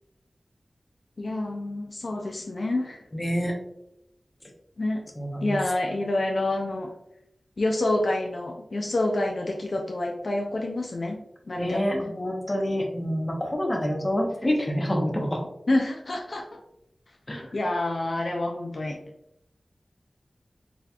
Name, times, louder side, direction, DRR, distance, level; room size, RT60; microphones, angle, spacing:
voice 1, 1.2-3.0 4.8-5.0 5.4-6.9 7.6-11.2 11.5-12.1 15.7-16.6 17.3-19.0, left 2 dB, 70° left, 1 dB, 0.4 m, -28 dB
voice 2, 3.1-3.5 5.2-5.6 11.5-15.5 17.3-17.5, equal, 30° left, 1 dB, 0.8 m, -27 dB
3.8 x 2.8 x 2.3 m, 0.81 s
wide cardioid pair, 70°, 0 cm